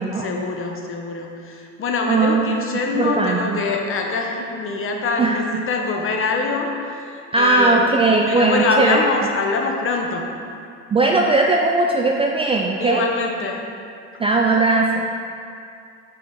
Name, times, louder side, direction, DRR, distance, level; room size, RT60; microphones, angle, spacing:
voice 1, 0.2-7.9 8.2-10.2 12.8-13.7 14.1-14.2, left 3 dB, 35° left, 2 dB, 0.9 m, -24 dB
voice 2, 2.1-2.5 2.9-3.6 5.2-5.4 7.3-9.0 10.9-13.1 14.2-15.1, right 3 dB, 15° right, 0 dB, 0.3 m, -18 dB
5.9 x 4.9 x 3.8 m, 2.4 s
supercardioid pair, 90°, 35 cm